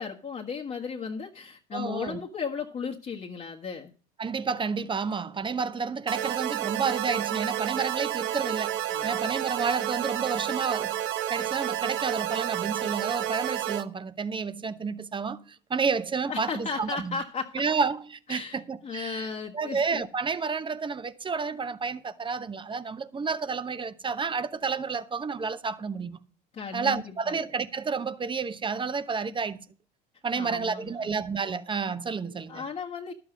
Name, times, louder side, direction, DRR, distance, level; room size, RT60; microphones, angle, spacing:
voice 1, 0.0-3.9 8.9-9.4 16.3-17.6 18.3-20.0 26.5-27.4 30.3-31.1 32.5-33.1, left 5 dB, 35° left, 1.5 m, -35 dB
voice 2, 1.7-2.2 4.2-11.0 11.3-15.4 15.7-17.2 17.5-19.3 19.5-26.2 26.7-29.6 30.2-32.6, right 5 dB, 25° right, 1.0 m, -30 dB
sound 1, 6.1-13.8, right 12 dB, 65° right, 0.9 m, -30 dB
12.0 x 7.9 x 5.1 m
hypercardioid pair, 80°, 21 cm